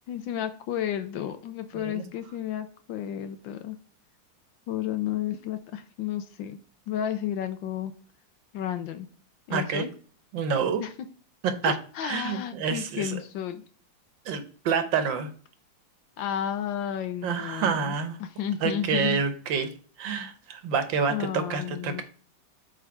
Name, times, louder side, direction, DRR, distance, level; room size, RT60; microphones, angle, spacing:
voice 1, 0.1-3.8 4.7-6.6 6.9-7.9 8.5-9.1 9.5-9.9 10.8-10.9 11.6-13.6 16.2-17.9 18.2-19.2 21.1-22.0, left 10 dB, 75° left, 9 dB, 1.3 m, -32 dB
voice 2, 9.5-9.8 10.3-10.8 11.4-11.7 12.0-13.2 14.2-15.3 17.2-18.2 18.6-19.7 20.0-22.0, right 6 dB, 70° right, 8 dB, 1.6 m, -28 dB
7.8 x 3.6 x 4.7 m, 0.42 s
omnidirectional pair, 2.3 m